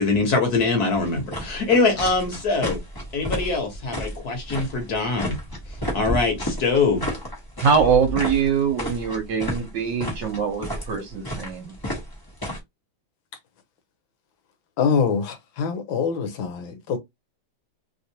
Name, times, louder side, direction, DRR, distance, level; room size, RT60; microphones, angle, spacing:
voice 1, 0.0-2.8 3.1-5.3 5.9-7.1, left 3 dB, 55° left, 1.5 m, -23 dB
sound 1, 0.9-12.6, equal, 20° left, 0.5 m, -32 dB
voice 2, 7.6-11.7, right 6 dB, 65° right, 1.4 m, -23 dB
voice 3, 14.8-17.0, left 6 dB, 75° left, 1.4 m, -24 dB
3.4 x 2.5 x 2.8 m
omnidirectional pair, 2.2 m